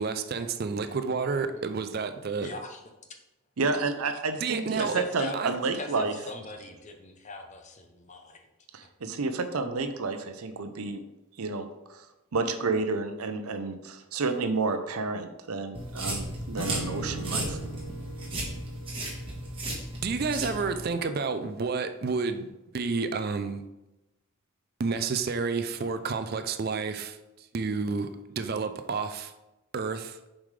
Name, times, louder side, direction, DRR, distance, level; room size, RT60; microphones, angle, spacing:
voice 1, 0.0-2.5 4.4-4.9 5.3-5.5 20.0-23.6 24.8-29.3 29.7-30.2, right 4 dB, 45° right, 0.4 m, -30 dB
voice 2, 2.4-2.8 4.8-5.4 5.8-8.5, left 2 dB, 35° left, 0.7 m, -41 dB
voice 3, 3.6-6.1 8.7-11.0 11.4-12.1 12.3-17.6, right 3 dB, 90° right, 0.7 m, -30 dB
sound 1, 15.7-20.9, right 1 dB, 25° right, 1.4 m, -35 dB
Acoustic guitar / Strum, 16.6-19.9, right 2 dB, 65° left, 1.5 m, -40 dB
7.2 x 5.1 x 3.3 m
head